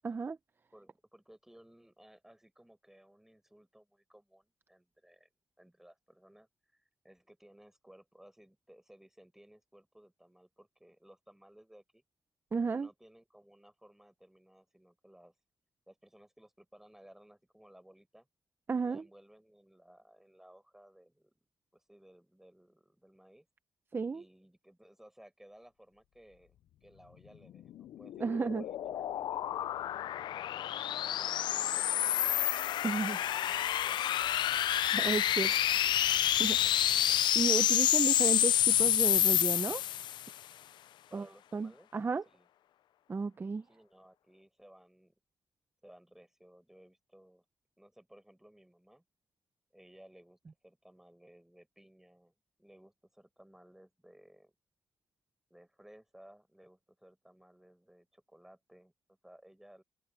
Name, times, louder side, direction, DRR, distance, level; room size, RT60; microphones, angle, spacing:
voice 1, 0.0-0.4 12.5-12.9 18.7-19.0 23.9-24.2 28.2-28.6 32.8-33.2 34.9-35.5 36.4-36.6 37.3-39.8 41.1-41.3 41.5-42.2 43.1-43.6, right 4 dB, 30° right, 0.7 m, -33 dB
voice 2, 0.7-5.3 5.6-12.0 12.6-15.3 15.9-18.3 18.8-21.5 21.7-23.5 24.1-30.7 31.2-34.4 35.0-35.8 36.6-36.7 41.1-41.9 42.2-42.5 43.7-45.1 45.8-47.4 47.8-49.0 49.7-54.5 55.5-59.8, right 1 dB, 5° right, 6.7 m, -59 dB
sound 1, 27.7-40.3, left 11 dB, 85° left, 0.5 m, -29 dB
open air
cardioid pair, 110°, 8 cm